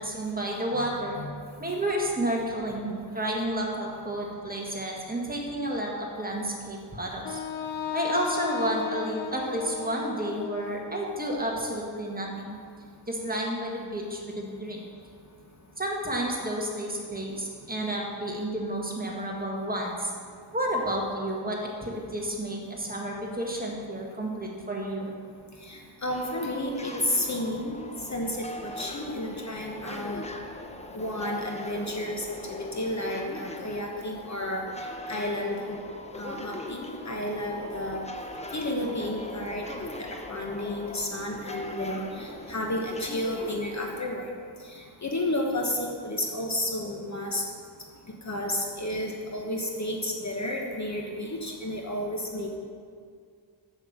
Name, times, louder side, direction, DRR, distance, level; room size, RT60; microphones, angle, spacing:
voice 1, 0.0-1.2 1.6-7.4 7.9-12.6 13.1-14.8 15.8-20.1 20.5-25.1, right 1 dB, 20° right, -2 dB, 1.7 m, -31 dB
Wind instrument woodwind instrument, 7.2-11.3, left 8 dB, 70° left, 0.7 m, -36 dB
voice 2, 25.6-27.8 28.1-30.2 30.9-34.6 35.1-35.8 36.2-38.0 38.5-39.6 40.0-44.3 44.7-47.4 48.2-52.6, left 1 dB, 35° left, 1 dB, 1.1 m, -32 dB
sound 1, 26.1-44.0, left 1 dB, 15° left, 0.7 m, -41 dB
7.9 x 7.1 x 7.2 m, 2.1 s
wide cardioid pair, 120°, 49 cm